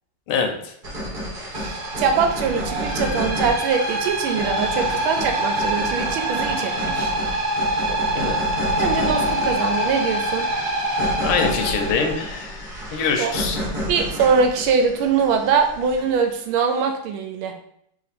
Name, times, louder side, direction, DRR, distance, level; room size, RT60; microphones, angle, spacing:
voice 1, 0.3-0.7 8.1-8.4 11.2-13.6, left 5 dB, 85° left, 5 dB, 1.5 m, -24 dB
sound 1, 0.8-16.3, equal, 40° right, 0.7 m, -31 dB
sound 2, 1.5-12.3, right 1 dB, 60° right, 1.1 m, -25 dB
voice 2, 1.5-7.1 8.8-10.5 13.2-13.3 13.9-17.6, right 5 dB, 75° right, 5 dB, 1.3 m, -22 dB
3.3 x 2.9 x 4.1 m, 0.71 s
omnidirectional pair, 2.4 m